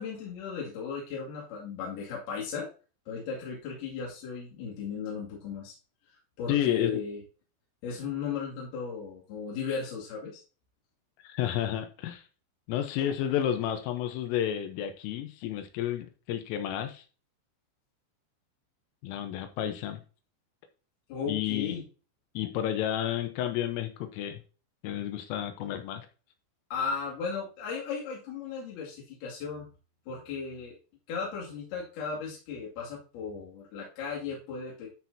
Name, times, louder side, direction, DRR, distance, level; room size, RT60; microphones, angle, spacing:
voice 1, 0.0-2.7 3.1-5.7 6.4-7.2 7.8-10.4 21.1-21.8 26.7-29.7 30.1-30.8 31.1-34.9, left 5 dB, 55° left, -4 dB, 3.9 m, -36 dB
voice 2, 6.5-7.0 11.2-12.2 12.7-17.0 19.0-20.0 21.3-21.8 22.4-24.4 24.8-26.1, left 11 dB, 80° left, 8 dB, 3.5 m, -31 dB
12.5 x 6.1 x 2.8 m, 0.35 s
omnidirectional pair, 6.0 m